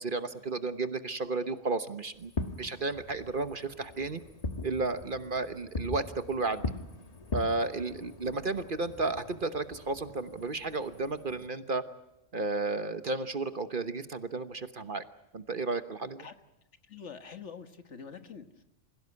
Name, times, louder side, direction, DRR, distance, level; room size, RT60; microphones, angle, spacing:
voice 1, 0.0-2.3 2.6-4.2 4.6-6.6 7.3-11.8 12.3-15.0 15.3-16.2, right 3 dB, 45° right, 11 dB, 1.2 m, -33 dB
Fireworks, 2.2-11.5, left 2 dB, 30° left, 1.4 m, -41 dB
voice 2, 16.8-18.6, left 6 dB, 60° left, 9 dB, 1.8 m, -45 dB
26.5 x 17.0 x 9.7 m, 0.89 s
omnidirectional pair, 1.4 m